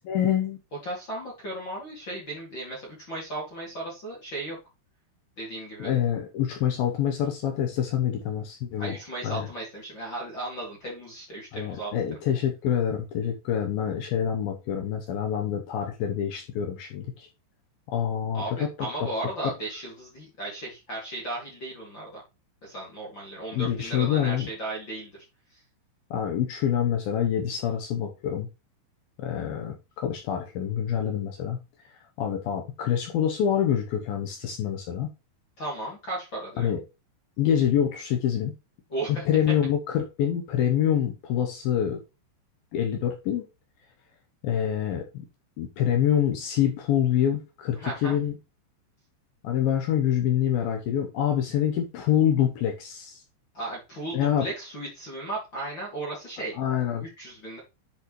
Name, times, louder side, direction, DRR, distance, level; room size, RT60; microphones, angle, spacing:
voice 1, 0.0-0.6 5.8-9.0 9.2-9.5 11.5-17.3 17.9-19.1 19.4-19.5 23.5-24.5 26.1-28.5 29.2-31.6 32.2-35.1 36.6-36.8 37.4-38.5 39.3-42.0 42.7-43.5 44.4-45.3 45.6-48.3 49.4-53.2 54.1-54.5 56.6-57.1, left 9 dB, 80° left, 2.1 m, -26 dB
voice 2, 0.8-4.6 5.4-5.9 8.8-11.9 18.3-22.2 22.6-25.1 25.5-25.6 35.6-36.7 38.9-39.2 47.8-48.1 53.5-56.6 57.0-57.6, right 2 dB, 35° left, 2.2 m, -35 dB
10.5 x 4.8 x 3.1 m
omnidirectional pair, 5.5 m